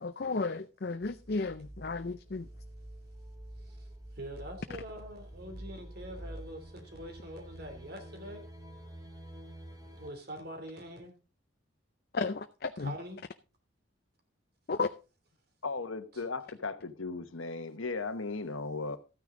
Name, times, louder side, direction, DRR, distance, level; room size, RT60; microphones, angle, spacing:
voice 1, 0.0-2.5 12.1-12.9 14.7-14.9, left 4 dB, 50° left, 0.5 m, -33 dB
sound 1, 1.0-10.1, right 1 dB, 20° right, 1.9 m, -48 dB
voice 2, 4.1-8.4 9.9-11.2 12.8-13.2 16.1-16.2, equal, 50° right, 3.0 m, -44 dB
voice 3, 15.6-19.0, left 3 dB, 90° left, 1.1 m, -36 dB
13.5 x 9.5 x 3.8 m
head